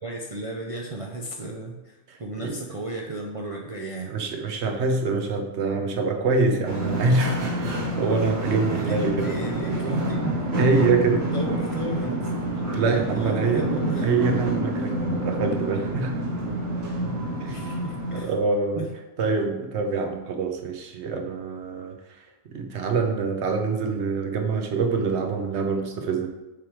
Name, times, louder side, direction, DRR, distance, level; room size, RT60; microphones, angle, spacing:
voice 1, 0.0-4.2 8.7-10.4 11.3-14.1 17.5-18.3 18.8-18.9, right 3 dB, 45° right, -1 dB, 0.4 m, -33 dB
voice 2, 2.1-2.5 4.1-9.3 10.6-11.3 12.7-13.7 14.0-16.2 17.4-17.7 18.1-18.8 19.2-22.0 22.5-26.3, right 4 dB, 65° right, 4 dB, 1.1 m, -25 dB
sound 1, 6.6-18.2, right 1 dB, 80° right, 1.7 m, -28 dB
6.8 x 3.3 x 4.8 m, 1.1 s
omnidirectional pair, 1.3 m